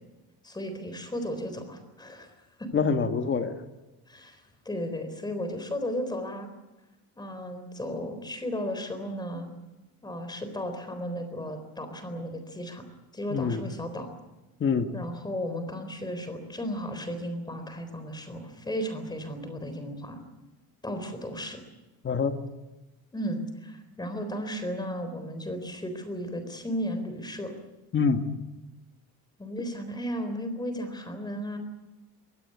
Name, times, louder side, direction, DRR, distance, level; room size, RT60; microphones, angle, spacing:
voice 1, 0.4-2.3 2.6-2.7 4.1-6.5 7.2-9.5 10.0-12.8 13.1-14.1 14.9-20.2 20.8-21.6 23.1-27.5 29.4-31.6, equal, 10° left, 8 dB, 4.0 m, -34 dB
voice 2, 2.7-3.6 13.3-13.6 14.6-14.9 22.0-22.3 27.9-28.2, left 5 dB, 30° left, 7 dB, 1.7 m, -25 dB
23.5 x 17.5 x 9.6 m, 1.1 s
cardioid pair, 170°, 38 cm